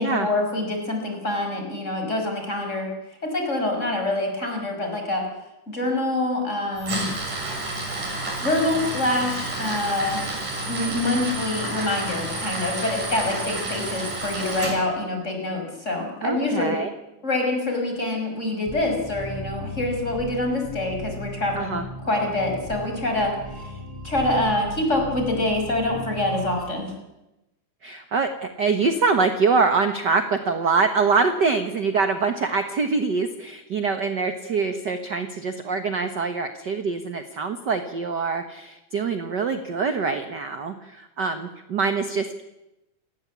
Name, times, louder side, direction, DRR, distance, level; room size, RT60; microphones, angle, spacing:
voice 1, 0.0-2.9 3.2-5.3 5.7-7.1 8.4-10.2 10.7-16.8 17.2-21.8 22.0-23.4 24.0-26.9, left 2 dB, 20° left, 3 dB, 6.2 m, -25 dB
Tools, 6.8-14.7, right 2 dB, 80° right, 8.9 m, -30 dB
voice 2, 16.2-16.9 21.6-21.8 27.8-42.4, right 4 dB, 45° right, 8 dB, 1.5 m, -24 dB
sound 1, 18.7-26.7, equal, 10° right, 7.0 m, -36 dB
29.0 x 19.0 x 8.4 m, 0.95 s
omnidirectional pair, 3.6 m